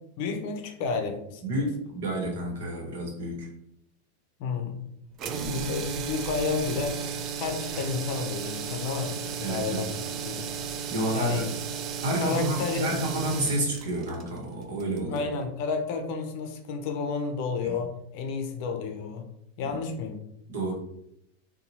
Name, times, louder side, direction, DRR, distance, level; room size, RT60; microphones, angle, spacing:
voice 1, 0.2-1.5 4.4-4.8 5.5-7.1 7.4-10.5 11.1-11.5 12.2-12.9 15.1-19.3 19.6-20.2, left 5 dB, 55° left, 5 dB, 0.5 m, -31 dB
voice 2, 1.4-3.5 5.3-5.8 9.4-9.8 10.9-11.5 12.0-15.3 17.6-17.8 19.6-19.7 20.5-20.7, right 1 dB, 70° right, -1 dB, 1.0 m, -30 dB
sound 1, 5.2-15.3, right 6 dB, 40° right, 0.3 m, -34 dB
2.7 x 2.2 x 2.9 m, 0.78 s
hypercardioid pair, 100°, 0 cm